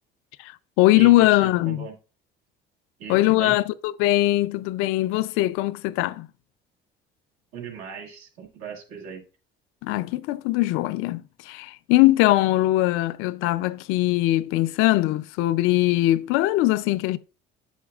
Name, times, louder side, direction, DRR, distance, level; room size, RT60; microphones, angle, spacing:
voice 1, 0.4-1.9 3.1-6.3 9.8-17.2, left 17 dB, 85° left, 0.5 m, -21 dB
voice 2, 0.9-2.0 3.0-3.6 7.5-9.2, right 6 dB, 85° right, 1.9 m, -38 dB
8.5 x 7.3 x 2.4 m
cardioid pair, 110°, 21 cm